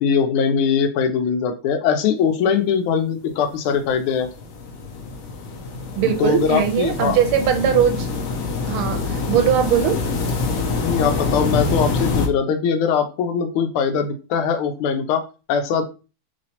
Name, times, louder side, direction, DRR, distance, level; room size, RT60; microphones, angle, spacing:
voice 1, 0.0-4.3 6.2-7.2 9.2-9.3 10.8-15.8, left 6 dB, 85° left, 1.5 m, -21 dB
sound 1, 3.5-12.3, left 3 dB, 70° left, 0.8 m, -25 dB
voice 2, 6.0-8.1 8.7-10.0, right 8 dB, 90° right, 1.5 m, -20 dB
3.3 x 3.1 x 2.7 m
omnidirectional pair, 2.3 m